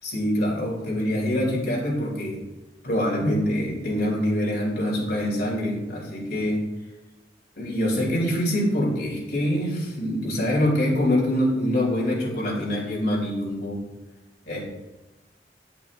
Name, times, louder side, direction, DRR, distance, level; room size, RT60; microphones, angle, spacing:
voice 1, 0.0-2.4 2.8-6.6 7.6-13.8 14.5-14.6, equal, 60° left, -3 dB, 2.7 m, -25 dB
11.0 x 5.9 x 2.4 m, 1.1 s
head